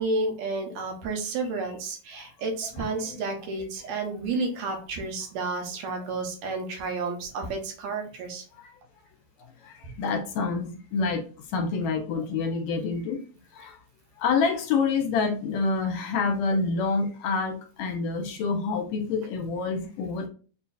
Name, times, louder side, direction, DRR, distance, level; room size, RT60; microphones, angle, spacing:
voice 1, 0.0-8.4, right 3 dB, 75° right, 3 dB, 2.2 m, -31 dB
voice 2, 2.8-3.2 4.6-4.7 6.0-6.1 8.5-8.8 9.6-13.2 13.5-13.8 14.2-20.3, left 4 dB, 75° left, 4 dB, 1.9 m, -28 dB
6.4 x 2.8 x 2.4 m, 0.39 s
omnidirectional pair, 3.3 m